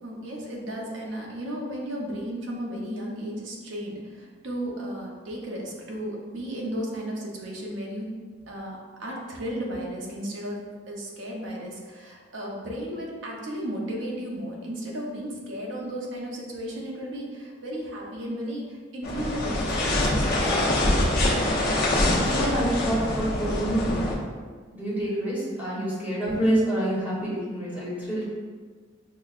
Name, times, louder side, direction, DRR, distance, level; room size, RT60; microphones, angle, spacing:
voice 1, 0.0-8.1 8.5-20.7, equal, 85° right, -2 dB, 0.8 m, -34 dB
sound 1, 19.0-24.1, left 1 dB, 55° left, 0.8 m, -24 dB
voice 2, 22.2-24.0 24.7-28.3, right 1 dB, 10° right, -8 dB, 1.0 m, -27 dB
5.8 x 2.1 x 2.4 m, 1.5 s
head